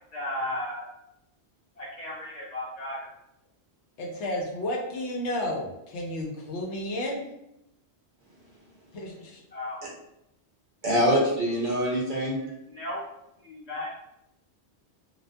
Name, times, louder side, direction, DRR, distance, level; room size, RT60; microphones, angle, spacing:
voice 1, 0.1-0.9 1.8-3.0 9.5-9.8 12.4-13.0 13.4-13.9, left 1 dB, 40° left, -5 dB, 0.8 m, -35 dB
voice 2, 4.0-7.3 8.9-9.4, left 1 dB, 85° left, -1 dB, 0.9 m, -32 dB
voice 3, 10.8-12.4, equal, 55° right, -3 dB, 0.7 m, -24 dB
2.4 x 2.2 x 2.5 m, 0.84 s
omnidirectional pair, 1.1 m